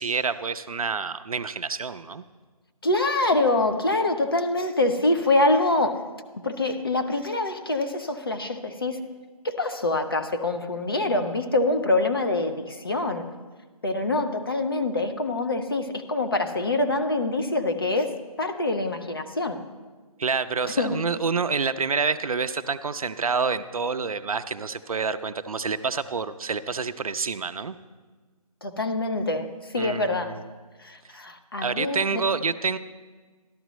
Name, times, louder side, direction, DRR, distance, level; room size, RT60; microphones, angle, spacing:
voice 1, 0.0-2.2 20.2-27.7 29.8-30.4 31.6-32.8, right 5 dB, 65° right, 12 dB, 0.5 m, -28 dB
voice 2, 2.8-6.1 6.4-9.0 9.4-13.3 13.8-19.6 20.8-21.0 28.6-30.4 30.8-32.2, left 2 dB, 40° left, 7 dB, 0.6 m, -25 dB
13.0 x 12.0 x 3.0 m, 1.4 s
figure-of-eight pair, 175°, 20 cm